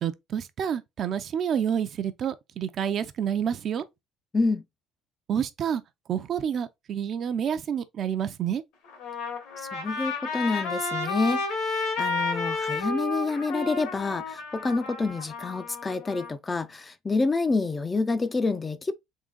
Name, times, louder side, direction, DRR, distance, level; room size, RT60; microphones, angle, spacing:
voice 1, 0.0-3.8 5.3-5.8 6.1-8.6, right 8 dB, 45° right, 0.5 m, -28 dB
Trumpet, 8.9-16.3, left 3 dB, 85° left, 1.9 m, -31 dB
voice 2, 9.6-18.9, left 3 dB, 20° left, 0.4 m, -28 dB
3.8 x 2.7 x 3.7 m
cardioid pair, 125°, 0 cm